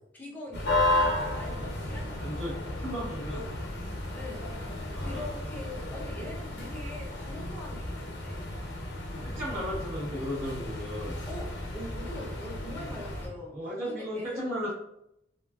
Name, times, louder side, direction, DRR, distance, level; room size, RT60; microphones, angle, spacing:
voice 1, 0.1-2.6 3.3-3.6 4.1-4.5 5.0-8.4 11.3-13.6 13.8-14.4, left 1 dB, 10° left, -4 dB, 0.7 m, -43 dB
sound 1, 0.5-13.3, left 1 dB, 60° left, 0.7 m, -33 dB
voice 2, 2.2-3.4 4.9-5.5 9.3-11.2 13.5-14.7, equal, 30° right, -11 dB, 1.0 m, -35 dB
3.3 x 2.4 x 2.3 m, 0.80 s
head